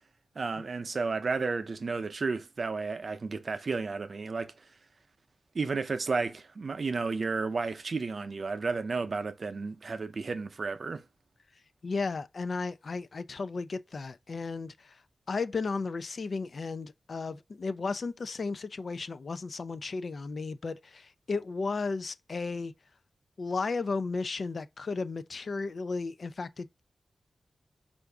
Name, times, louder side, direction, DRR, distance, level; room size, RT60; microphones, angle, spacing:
voice 1, 0.4-4.5 5.5-11.0, right 4 dB, 60° right, 0.6 m, -32 dB
voice 2, 11.8-15.0 15.3-22.7 23.4-26.8, left 4 dB, 65° left, 0.4 m, -34 dB
4.7 x 2.6 x 3.4 m
wide cardioid pair, 85°, 0 cm